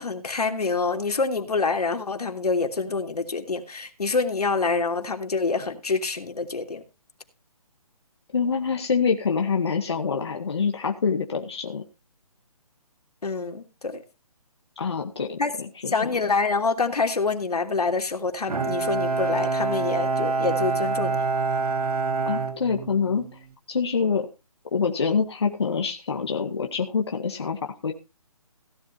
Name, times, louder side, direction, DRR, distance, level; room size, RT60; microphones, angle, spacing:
voice 1, 0.0-6.8 13.2-14.0 15.4-15.5 15.9-21.3, left 4 dB, 85° left, 3.0 m, -26 dB
voice 2, 8.3-11.8 14.8-16.1 22.3-23.4 23.7-24.3 24.7-27.9, left 5 dB, 45° left, 1.9 m, -26 dB
Bowed string instrument, 18.5-23.3, right 3 dB, 75° right, 1.7 m, -26 dB
17.0 x 12.0 x 2.7 m
hypercardioid pair, 180°, 19 cm